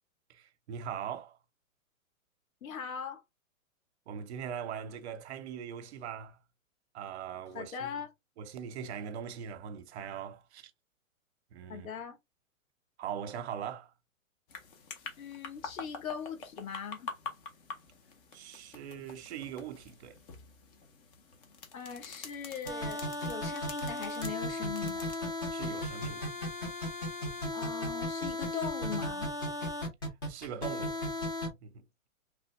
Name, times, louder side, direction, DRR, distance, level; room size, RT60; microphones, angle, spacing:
voice 1, 0.3-1.4 4.1-6.4 6.9-8.0 8.4-10.7 11.5-11.9 13.0-13.9 18.3-20.2 25.5-26.3 30.3-31.0 31.4-31.8, right 8 dB, 50° right, 0.6 m, -41 dB
voice 2, 2.6-3.2 7.5-8.1 11.7-12.2 15.2-17.1 21.7-25.1 27.5-29.3, left 7 dB, 75° left, 1.1 m, -40 dB
sound 1, 14.5-25.2, left 5 dB, 40° left, 0.8 m, -47 dB
sound 2, 22.7-31.5, left 1 dB, 20° left, 0.3 m, -35 dB
3.2 x 2.1 x 3.0 m
hypercardioid pair, 130°, 41 cm